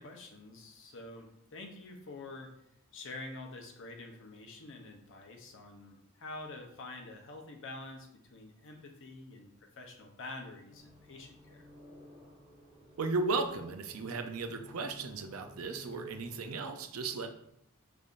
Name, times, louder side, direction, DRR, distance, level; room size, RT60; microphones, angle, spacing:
voice 1, 0.0-2.5 2.9-11.7, left 2 dB, 65° left, 3 dB, 0.7 m, -47 dB
sound 1, 10.7-16.7, equal, 25° right, 1.2 m, -55 dB
voice 2, 13.0-17.3, right 3 dB, 75° right, 6 dB, 0.5 m, -35 dB
5.3 x 3.4 x 2.5 m, 0.73 s
head